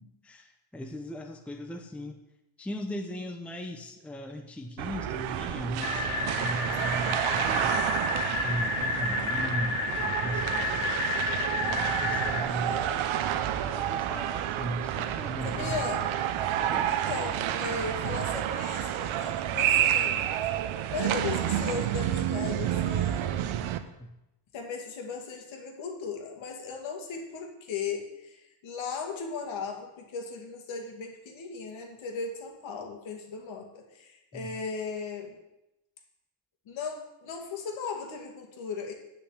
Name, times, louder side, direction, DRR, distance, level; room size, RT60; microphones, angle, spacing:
voice 1, 0.0-2.2 2.6-7.8 8.2-10.9 11.5-12.8 13.4-15.8 16.7-16.9 24.0-24.1 34.3-34.5, equal, 5° left, 4 dB, 0.7 m, -38 dB
sound 1, 4.8-23.8, right 11 dB, 70° right, 0.9 m, -29 dB
sound 2, 5.8-12.4, left 4 dB, 90° left, 1.6 m, -31 dB
voice 2, 12.5-13.0 15.4-16.0 16.9-20.2 20.9-23.3 24.5-35.4 36.7-38.9, left 5 dB, 65° left, 3 dB, 2.2 m, -37 dB
8.2 x 6.3 x 8.1 m, 0.93 s
cardioid pair, 140°, 50 cm